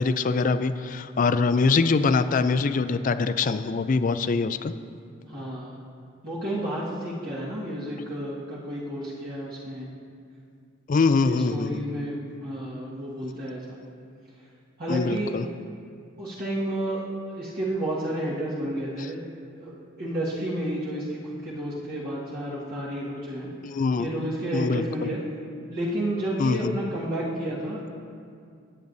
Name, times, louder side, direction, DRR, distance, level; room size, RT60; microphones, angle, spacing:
voice 1, 0.0-4.7 10.9-11.8 14.9-15.4 23.6-25.1 26.4-26.7, left 4 dB, 40° left, 12 dB, 0.3 m, -24 dB
voice 2, 5.3-5.8 6.2-9.9 11.3-13.8 14.8-15.4 16.2-17.0 17.3-19.3 19.6-23.5 24.0-25.2 25.7-28.0, right 1 dB, 45° right, -8 dB, 1.6 m, -31 dB
20.5 x 8.7 x 2.7 m, 2.3 s
head